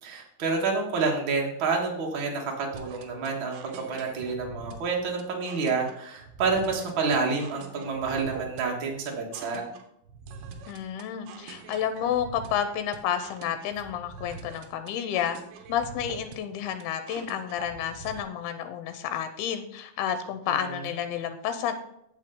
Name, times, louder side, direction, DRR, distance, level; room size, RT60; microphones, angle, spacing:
voice 1, 0.0-3.6 3.9-9.6 20.5-20.8, right 4 dB, 65° right, -1 dB, 1.2 m, -28 dB
sound 1, 2.7-18.2, right 5 dB, 85° right, 2.9 m, -45 dB
voice 2, 10.7-15.4 15.7-21.7, left 9 dB, 90° left, 9 dB, 2.6 m, -30 dB
8.8 x 7.6 x 3.8 m, 0.79 s
omnidirectional pair, 4.6 m